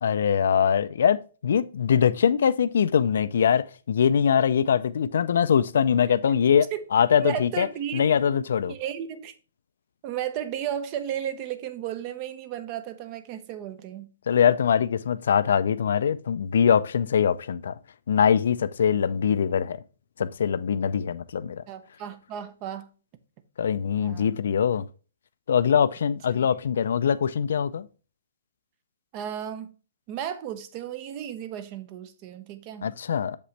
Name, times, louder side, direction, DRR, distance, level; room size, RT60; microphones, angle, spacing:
voice 1, 0.0-7.7 7.9-8.7 14.3-17.7 18.1-19.8 20.2-21.6 23.6-24.9 25.5-27.9 32.8-33.4, left 7 dB, 70° left, 0.4 m, -22 dB
voice 2, 7.2-8.0 8.6-9.4 10.0-14.1 21.7-22.9 24.0-24.4 26.3-26.5 29.1-29.7 30.1-32.9, right 10 dB, 30° right, 0.6 m, -34 dB
6.9 x 5.1 x 3.2 m
hypercardioid pair, 155°, 0 cm